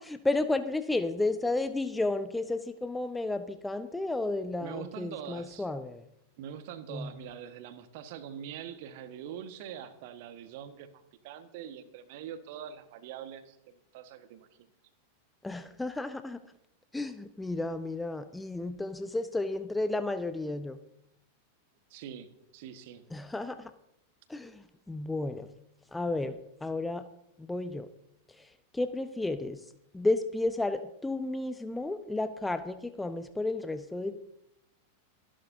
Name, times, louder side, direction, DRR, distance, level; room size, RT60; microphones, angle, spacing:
voice 1, 0.0-6.0 6.9-7.1 15.4-16.4 16.9-20.8 23.1-23.7 24.3-25.5 25.9-27.0 27.4-27.9 28.7-29.6 29.9-34.2, left 2 dB, 5° left, 11 dB, 0.7 m, -32 dB
voice 2, 4.6-5.7 6.4-13.6 13.9-14.7 21.9-23.0, right 9 dB, 50° right, 10 dB, 1.5 m, -43 dB
27.0 x 11.5 x 2.7 m, 0.81 s
figure-of-eight pair, 90°, 0 cm